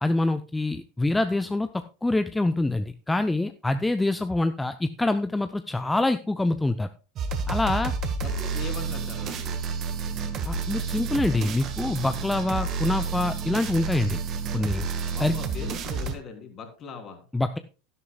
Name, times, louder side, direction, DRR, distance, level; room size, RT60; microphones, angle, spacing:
voice 1, 0.0-6.9 7.5-7.9 10.5-14.2 14.5-14.9 15.2-15.3 17.3-17.6, left 2 dB, 10° left, 10 dB, 0.6 m, -25 dB
sound 1, 7.2-16.1, right 4 dB, 40° right, 1.6 m, -30 dB
voice 2, 8.2-9.5 15.1-17.2, left 4 dB, 35° left, 3 dB, 3.3 m, -40 dB
12.5 x 11.5 x 2.3 m, 0.34 s
figure-of-eight pair, 80°, 0 cm